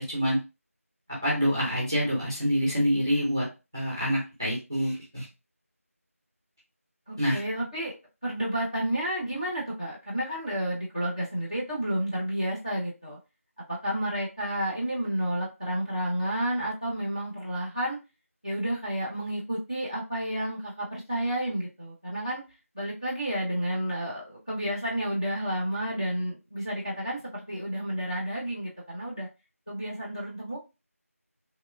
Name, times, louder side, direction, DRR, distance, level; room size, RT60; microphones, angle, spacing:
voice 1, 0.1-0.4 1.2-3.4 3.7-5.2 7.2-7.4, equal, 15° right, -6 dB, 0.6 m, -26 dB
voice 2, 7.1-7.9 8.2-13.2 13.7-18.0 18.4-22.4 22.7-29.3 29.7-30.6, right 1 dB, 25° left, -7 dB, 0.7 m, -31 dB
2.9 x 2.2 x 2.3 m, 0.27 s
figure-of-eight pair, 180°, 8 cm